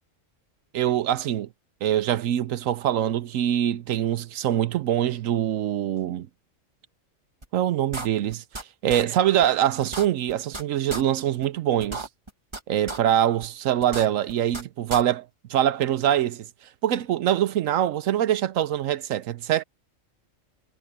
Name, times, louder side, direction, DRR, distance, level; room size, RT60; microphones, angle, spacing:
voice 1, 0.7-1.5 1.8-6.3 7.5-12.1 12.7-16.4 16.8-19.6, right 11 dB, 75° right, 1.0 m, -24 dB
sound 1, 7.4-7.5 7.9-8.6 8.9-9.0 9.4-9.5 9.8-10.6 10.9-11.0 11.4-11.5 11.8-12.6 12.9-13.0 13.4-13.5 13.8-14.6 14.9-15.0, right 2 dB, 20° right, 1.9 m, -34 dB
omnidirectional pair, 1.4 m